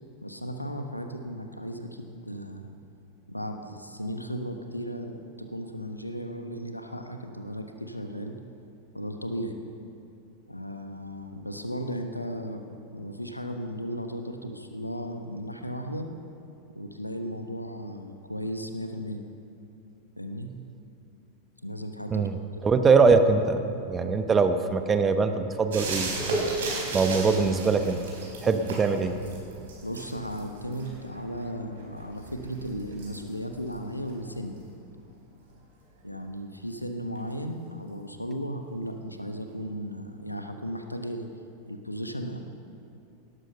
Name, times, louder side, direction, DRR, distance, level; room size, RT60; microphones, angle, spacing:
voice 1, 0.2-2.7 3.3-8.4 8.9-9.6 10.5-12.6 12.9-16.1 16.7-19.2 20.2-20.5 21.6-22.6 29.8-34.6 36.0-41.3 41.7-42.4, equal, 85° left, 6 dB, 1.2 m, -35 dB
voice 2, 22.6-26.4 26.9-28.0 28.4-29.1, right 4 dB, 20° right, 8 dB, 1.1 m, -22 dB
sound 1, 25.7-35.1 37.2-37.3, right 3 dB, 60° right, 4.4 m, -36 dB
18.0 x 13.5 x 5.6 m, 2.7 s
figure-of-eight pair, 90°, 0 cm